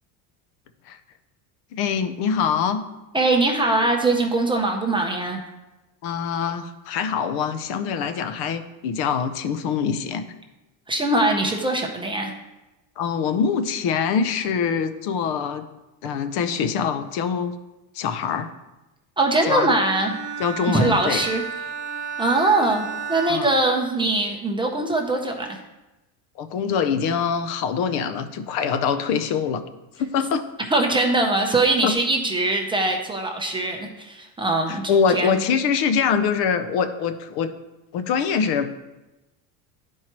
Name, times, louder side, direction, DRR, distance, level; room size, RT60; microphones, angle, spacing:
voice 1, 1.7-2.8 6.0-10.2 13.0-15.6 16.0-17.5 17.9-18.5 19.5-19.7 20.4-21.2 23.3-23.5 26.4-29.6 30.0-30.4 31.8-32.0 34.7-37.5 37.9-38.7, left 6 dB, 60° left, 10 dB, 0.7 m, -24 dB
voice 2, 3.1-5.4 10.9-12.3 19.2-20.1 20.7-21.4 22.2-25.6 30.7-34.8 35.1-35.4, right 2 dB, 10° right, 2 dB, 0.5 m, -22 dB
Bowed string instrument, 19.8-24.3, right 6 dB, 35° right, 1.4 m, -33 dB
10.5 x 4.6 x 2.9 m, 1.0 s
cardioid pair, 135°, 43 cm